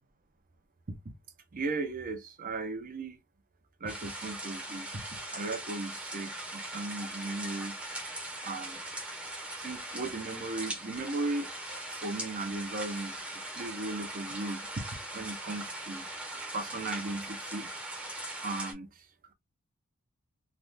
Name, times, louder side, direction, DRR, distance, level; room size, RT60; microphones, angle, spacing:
voice 1, 1.5-3.2 3.8-5.0 5.3-7.8 8.4-8.8 9.6-14.8 15.1-16.1 16.5-17.7 18.4-19.0, right 2 dB, 40° right, 0.6 m, -37 dB
sound 1, 3.9-18.7, right 1 dB, 5° right, 0.8 m, -40 dB
3.3 x 2.3 x 2.5 m
head